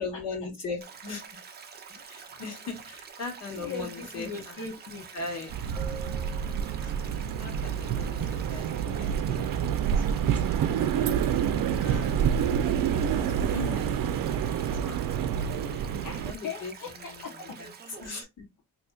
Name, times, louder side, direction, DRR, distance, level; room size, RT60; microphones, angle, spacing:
voice 1, 0.0-1.4 1.9-4.5 5.1-5.5 6.8-6.9 7.4-10.2 10.5-12.2 13.1-15.0 16.2-16.7 17.0-17.1 17.6-17.7 18.0-18.5, left 4 dB, 50° left, 1.6 m, -40 dB
Stream, 0.8-18.2, right 6 dB, 30° right, 0.6 m, -47 dB
voice 2, 3.5-5.1 15.1-15.2 15.7-17.6, left 5 dB, 70° left, 1.0 m, -40 dB
sound 1, 5.5-16.3, right 8 dB, 75° right, 0.5 m, -28 dB
sound 2, 5.8-7.5 10.1-10.4, right 6 dB, 5° left, 0.9 m, -45 dB
4.3 x 2.9 x 2.3 m
wide cardioid pair, 180°, 33 cm